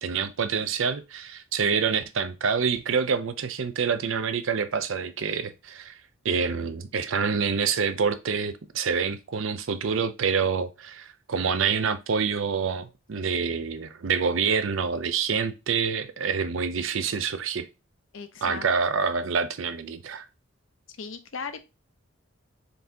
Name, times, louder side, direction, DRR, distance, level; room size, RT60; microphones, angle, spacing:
voice 1, 0.0-5.9 6.2-17.7 18.4-20.2, right 6 dB, 70° right, 0.5 m, -27 dB
voice 2, 18.1-18.7 21.0-21.6, left 5 dB, 65° left, 0.6 m, -37 dB
4.0 x 3.5 x 2.7 m
head